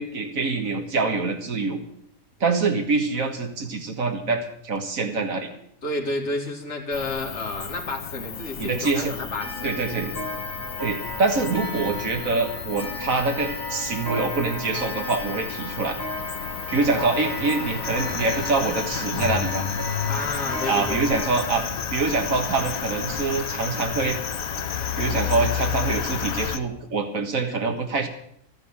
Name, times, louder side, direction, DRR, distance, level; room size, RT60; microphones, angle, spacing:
voice 1, 0.0-1.8 2.4-5.5 8.6-9.1 9.6-10.1 10.8-16.0 16.7-19.6 20.6-24.2 25.0-28.1, right 3 dB, 85° right, 4 dB, 2.1 m, -25 dB
voice 2, 5.8-9.7 17.0-17.5 20.1-21.0, left 2 dB, 55° left, 0 dB, 2.7 m, -31 dB
Cricket, 6.9-26.6, left 8 dB, 85° left, 1.4 m, -33 dB
Clock, 9.4-21.5, left 1 dB, 15° right, 2.1 m, -35 dB
sound 1, 17.8-26.6, left 5 dB, 40° left, 0.4 m, -34 dB
13.0 x 10.5 x 8.8 m, 0.70 s
omnidirectional pair, 1.4 m